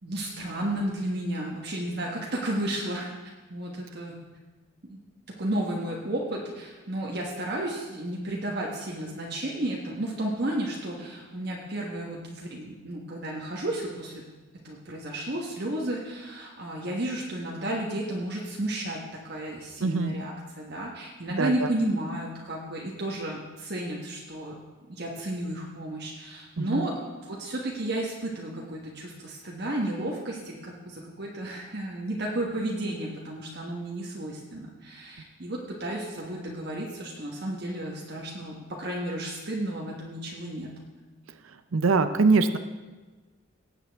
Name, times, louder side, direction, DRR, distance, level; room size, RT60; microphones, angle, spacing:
voice 1, 0.0-3.1 3.5-4.2 4.9-5.0 5.4-14.2 14.5-24.6 24.9-26.9 27.2-40.7, right 1 dB, 50° right, -2 dB, 1.3 m, -32 dB
voice 2, 19.8-20.1 21.4-21.7 26.6-26.9 41.7-42.6, right 4 dB, 80° right, 10 dB, 0.6 m, -23 dB
18.5 x 8.2 x 3.5 m, 1.3 s
head